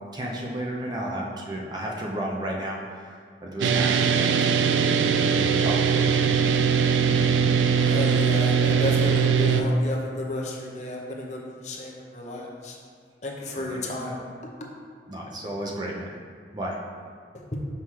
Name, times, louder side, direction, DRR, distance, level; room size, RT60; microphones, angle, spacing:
voice 1, 0.1-4.8 5.1-6.2 13.5-13.8 15.1-16.1 16.5-16.8, right 1 dB, 25° right, -2 dB, 0.6 m, -33 dB
sound 1, 3.6-9.6, right 6 dB, 90° right, 0.3 m, -21 dB
voice 2, 7.7-12.8 13.2-14.2, left 2 dB, 40° left, -1 dB, 0.8 m, -32 dB
5.7 x 5.6 x 3.2 m, 2.1 s
head